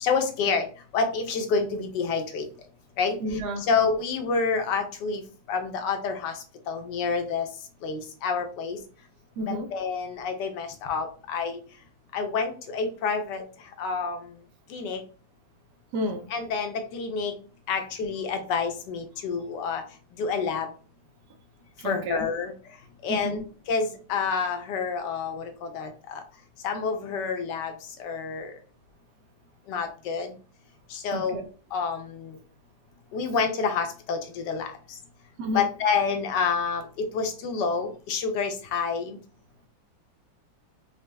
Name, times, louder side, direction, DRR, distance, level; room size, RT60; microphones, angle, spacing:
voice 1, 0.0-0.7 0.9-2.4 3.0-3.2 3.6-5.2 5.5-6.3 6.7-7.5 7.8-8.8 9.5-11.6 12.1-13.4 13.8-14.2 14.7-15.0 16.3-17.3 17.7-19.8 20.2-20.7 21.8-22.5 23.0-23.4 23.7-26.2 26.6-27.7 28.0-28.5 29.7-30.3 30.9-31.4 31.7-32.4 33.1-34.7 35.5-39.2, left 5 dB, 70° left, 1.2 m, -28 dB
voice 2, 3.2-3.7 9.4-9.7 15.9-16.3 21.8-22.2 23.1-23.4 31.1-31.4 35.4-35.7, equal, 75° right, 1.0 m, -30 dB
4.1 x 2.1 x 3.3 m
omnidirectional pair, 2.2 m